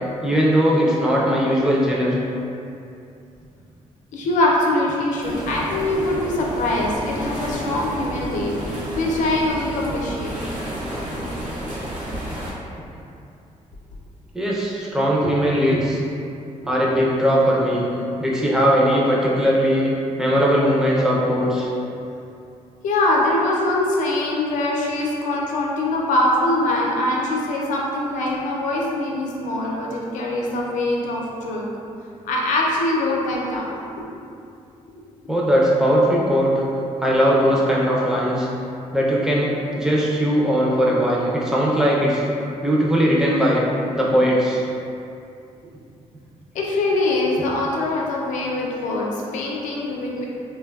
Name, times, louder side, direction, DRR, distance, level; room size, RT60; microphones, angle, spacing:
voice 1, 0.2-2.2 14.3-16.0 16.6-17.9 18.2-19.9 20.2-21.7 35.3-36.5 37.0-38.5 38.9-42.3 42.6-43.6 43.9-44.6, equal, 5° right, -5 dB, 0.5 m, -19 dB
voice 2, 4.1-10.3 22.8-31.6 32.2-33.9 34.9-35.0 46.5-50.2, left 2 dB, 80° left, -3 dB, 0.5 m, -23 dB
sound 1, 5.2-12.5, equal, 85° right, 0.6 m, -30 dB
3.1 x 2.2 x 2.3 m, 2.6 s
cardioid pair, 110°, 13 cm